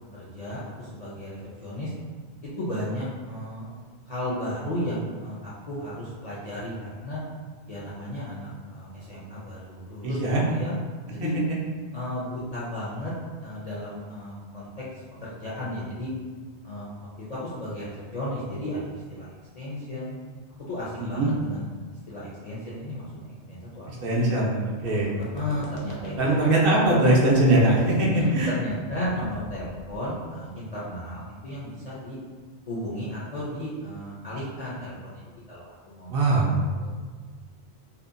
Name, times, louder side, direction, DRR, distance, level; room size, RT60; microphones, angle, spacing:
voice 1, 0.1-1.9 2.4-3.8 4.1-7.2 7.7-10.2 10.5-10.7 11.1-11.4 11.9-13.1 13.4-14.7 15.2-16.1 16.6-16.9 17.2-19.3 19.6-20.1 20.7-21.7 22.1-23.9 25.3-26.4 28.1-32.2 32.7-35.2 35.5-36.9, left 1 dB, 55° left, -8 dB, 0.4 m, -34 dB
voice 2, 10.0-10.4 11.2-11.3 21.0-21.3 24.0-25.1 26.2-28.5 36.1-36.5, right 2 dB, 65° right, -4 dB, 0.7 m, -21 dB
sound 1, 24.8-30.1, left 3 dB, 70° left, 0.8 m, -38 dB
2.7 x 2.1 x 2.4 m, 1.5 s
omnidirectional pair, 1.1 m